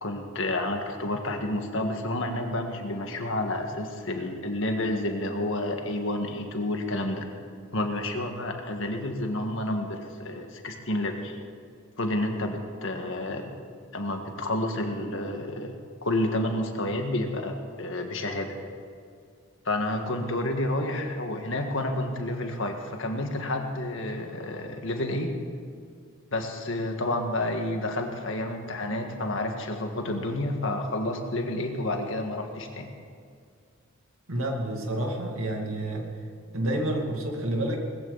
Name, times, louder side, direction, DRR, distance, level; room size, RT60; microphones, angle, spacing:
voice 1, 0.0-7.2 7.7-11.4 12.0-13.5 13.9-15.8 16.0-18.5 19.7-25.3 26.3-32.9, left 1 dB, 65° left, 3 dB, 1.8 m, -30 dB
voice 2, 34.3-36.1 36.5-37.8, right 1 dB, 75° right, 1 dB, 2.5 m, -29 dB
19.5 x 15.0 x 4.1 m, 2.2 s
head